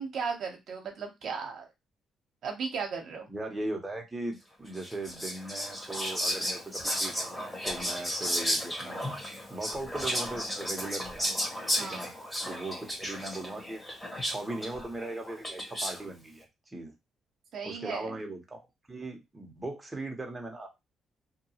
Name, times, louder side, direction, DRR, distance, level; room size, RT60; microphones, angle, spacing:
voice 1, 0.0-1.7 2.4-3.3 11.8-12.1 17.5-18.2, right 5 dB, 65° right, 3 dB, 0.8 m, -36 dB
voice 2, 3.3-9.1 9.5-11.4 11.8-12.1 12.4-13.8 14.3-16.9 17.6-20.7, right 2 dB, 15° right, 1 dB, 0.8 m, -39 dB
Whispering, 4.7-16.1, equal, 15° left, 1.2 m, -34 dB
2.8 x 2.3 x 2.8 m, 0.21 s
cardioid pair, 90°, 0 cm